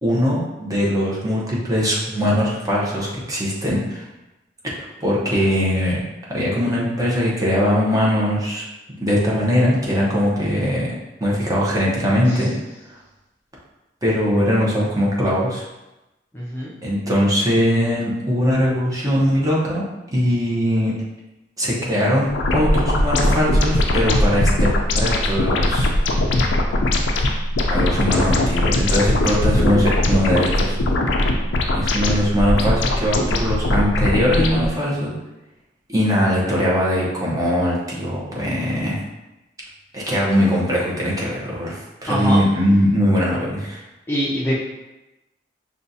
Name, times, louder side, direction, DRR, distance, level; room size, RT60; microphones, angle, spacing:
voice 1, 0.0-4.0 4.6-4.7 5.0-6.0 6.3-8.6 9.0-10.9 11.2-12.5 14.0-15.7 16.8-19.8 20.1-20.9 21.6-24.7 25.0-25.9 27.7-30.8 31.7-35.1 35.9-39.0 39.9-43.8, equal, 20° right, -5 dB, 0.8 m, -20 dB
voice 2, 16.3-16.7 42.1-42.4 44.1-44.6, equal, 10° left, -7 dB, 0.5 m, -23 dB
sound 1, 22.3-34.7, left 1 dB, 80° left, 0.5 m, -20 dB
5.5 x 2.4 x 2.7 m, 1.0 s
head